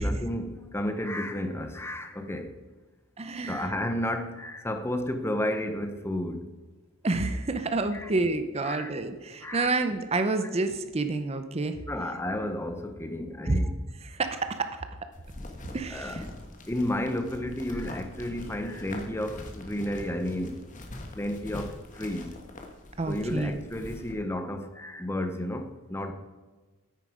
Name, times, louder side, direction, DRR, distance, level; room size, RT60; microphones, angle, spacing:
voice 1, 0.0-2.5 3.5-6.5 7.9-8.1 8.6-8.9 9.4-9.7 11.9-13.7 15.9-16.2 16.7-20.6 21.2-22.3 23.1-26.1, left 1 dB, 10° left, 0.7 m, -32 dB
voice 2, 3.2-3.7 7.0-11.8 13.4-13.6 14.0-14.8 15.7-16.2 23.0-23.6, right 3 dB, 30° right, 0.6 m, -29 dB
sound 1, 15.1-24.1, left 1 dB, 35° left, 1.4 m, -43 dB
9.7 x 9.3 x 4.9 m
head